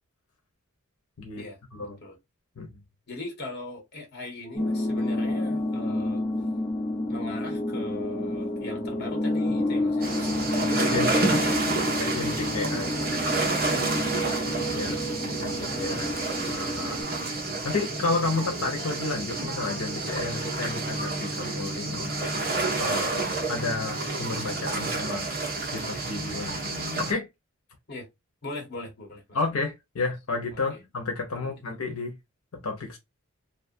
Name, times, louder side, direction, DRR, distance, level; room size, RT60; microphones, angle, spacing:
voice 1, 1.3-2.2 3.1-6.2 7.1-12.2 13.6-15.2 15.9-16.5 27.9-28.1 28.4-29.2 30.5-30.8 31.3-31.5, left 2 dB, 45° left, 1.2 m, -40 dB
sound 1, 4.5-17.0, left 1 dB, 25° left, 0.7 m, -29 dB
sound 2, 10.0-27.1, right 3 dB, 45° right, 0.9 m, -30 dB
voice 2, 10.8-11.1 12.0-13.0 14.7-15.0 15.2-16.1 16.4-17.1 17.6-22.3 22.8-26.7 27.0-27.3 29.3-32.2 32.6-33.0, left 3 dB, 85° left, 0.7 m, -31 dB
2.5 x 2.4 x 2.6 m
head